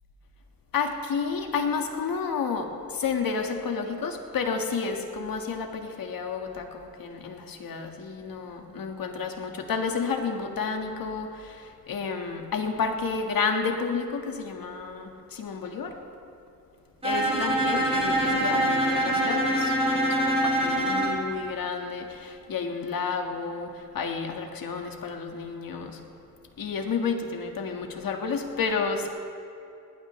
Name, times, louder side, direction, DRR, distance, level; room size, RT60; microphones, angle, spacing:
voice 1, 0.7-15.9 17.0-26.0 26.6-29.1, left 5 dB, 70° left, 3 dB, 1.7 m, -31 dB
Bowed string instrument, 17.0-21.2, right 1 dB, 15° right, 2.7 m, -24 dB
21.0 x 18.5 x 3.2 m, 2.7 s
wide cardioid pair, 145°, 36 cm